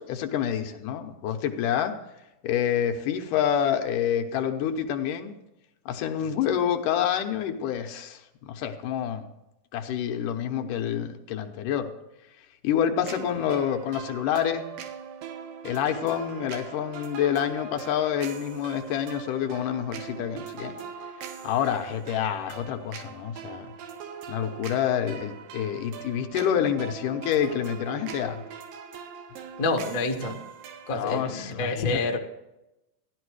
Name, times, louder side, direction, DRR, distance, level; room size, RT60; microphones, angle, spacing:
voice 1, 0.0-2.0 2.4-5.4 5.9-9.2 9.7-11.9 12.6-14.7 15.6-20.7 21.4-23.7 24.3-28.4 30.9-32.0, left 9 dB, 75° left, 5 dB, 2.4 m, -27 dB
sound 1, 13.0-31.4, right 7 dB, 85° right, 2.8 m, -41 dB
voice 2, 29.6-30.4 30.9-32.2, left 2 dB, 50° left, 2 dB, 1.0 m, -28 dB
14.5 x 11.5 x 4.8 m, 0.92 s
omnidirectional pair, 4.0 m